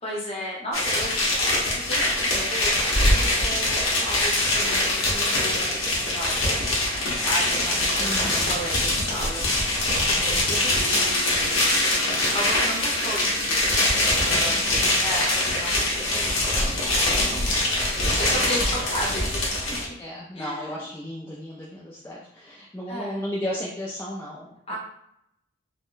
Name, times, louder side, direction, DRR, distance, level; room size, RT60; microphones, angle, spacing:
voice 1, 0.0-6.5 7.2-11.7 12.3-14.7 15.0-17.6 18.2-20.0 20.4-20.8 22.9-23.3 24.7-24.8, equal, 30° left, -3 dB, 0.8 m, -34 dB
sound 1, 0.7-19.9, left 1 dB, 70° left, 0.9 m, -23 dB
voice 2, 8.0-8.6 10.0-10.4 14.1-15.0 18.0-18.2 20.0-24.8, equal, 10° left, -5 dB, 0.3 m, -35 dB
sound 2, 10.7-17.3, right 1 dB, 80° right, 1.4 m, -42 dB
3.6 x 2.1 x 2.5 m, 0.77 s
head